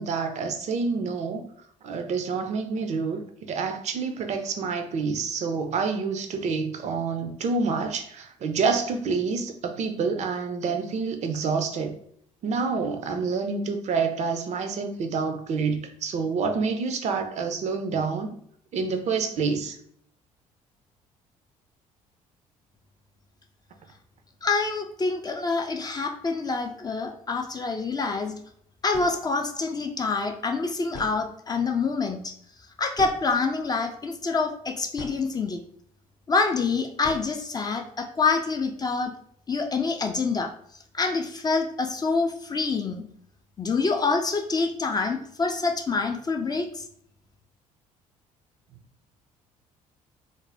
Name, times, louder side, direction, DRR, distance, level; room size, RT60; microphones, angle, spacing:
voice 1, 0.0-1.4 1.8-12.0 12.4-18.3 18.7-19.8, right 5 dB, 40° right, 6 dB, 0.4 m, -28 dB
voice 2, 24.4-28.4 28.8-32.3 32.8-35.6 36.3-39.1 39.5-40.5 40.9-43.0 43.6-46.8, left 4 dB, 20° left, 4 dB, 0.4 m, -26 dB
sound 1, 28.6-28.7 28.9-29.3 30.5-30.6 30.9-31.7 33.0-33.8 34.5-35.4 37.0-37.6, left 2 dB, 50° left, 0.7 m, -42 dB
2.5 x 2.1 x 3.2 m, 0.65 s
figure-of-eight pair, 50°, 18 cm